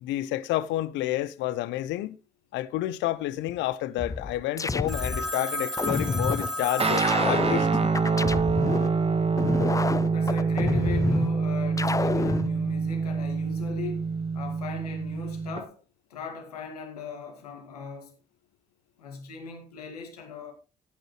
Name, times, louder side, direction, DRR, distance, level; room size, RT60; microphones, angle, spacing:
voice 1, 0.0-2.2 2.5-7.7, left 15 dB, 70° left, 0.7 m, -30 dB
sound 1, 4.0-5.3 5.8-6.5 7.0-8.9 9.4-11.3 11.8-12.5, left 3 dB, 15° left, 0.6 m, -28 dB
Telephone, 4.9-7.7, left 1 dB, ahead, 1.9 m, -33 dB
Guitar, 6.8-15.6, right 4 dB, 30° right, 1.5 m, -26 dB
voice 2, 10.1-15.8 16.1-18.2 19.0-20.5, left 5 dB, 90° left, 2.2 m, -39 dB
17.0 x 9.0 x 3.1 m
hypercardioid pair, 45°, 19 cm